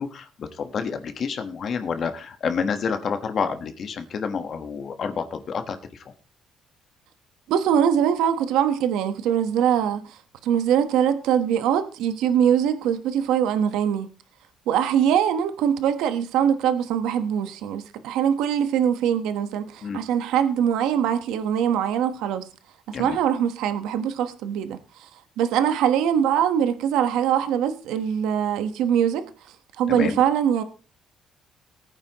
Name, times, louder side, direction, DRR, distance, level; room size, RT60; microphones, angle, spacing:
voice 1, 0.0-5.8 19.8-20.0 22.9-23.2 29.9-30.2, left 6 dB, 45° left, 1.4 m, -29 dB
voice 2, 7.5-14.1 14.7-22.5 22.9-25.1 25.4-29.3 29.8-30.6, right 9 dB, 90° right, 1.2 m, -22 dB
19.5 x 9.4 x 3.0 m
cardioid pair, 130°, 0 cm